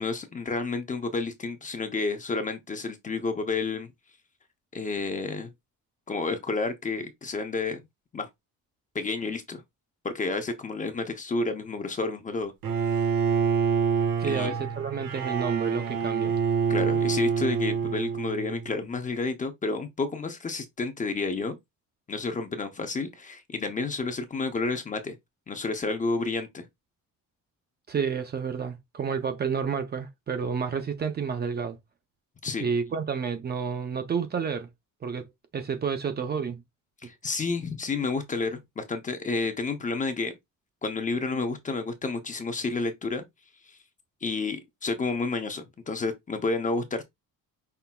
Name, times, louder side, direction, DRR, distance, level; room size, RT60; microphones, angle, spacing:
voice 1, 0.0-3.9 4.7-5.5 6.1-7.8 8.1-8.3 8.9-9.6 10.0-12.5 14.2-14.5 16.7-21.6 22.1-25.2 25.5-26.7 32.4-32.7 37.0-40.3 40.8-43.2 43.7-43.8 44.2-47.0, left 3 dB, 25° left, 0.6 m, -30 dB
Bowed string instrument, 12.6-18.7, right 6 dB, 85° right, 1.3 m, -26 dB
voice 2, 14.2-16.3 27.9-31.8 32.6-34.7 35.0-35.3 35.5-36.6, right 6 dB, 30° right, 0.6 m, -30 dB
5.7 x 3.4 x 2.2 m
cardioid pair, 170°, 33 cm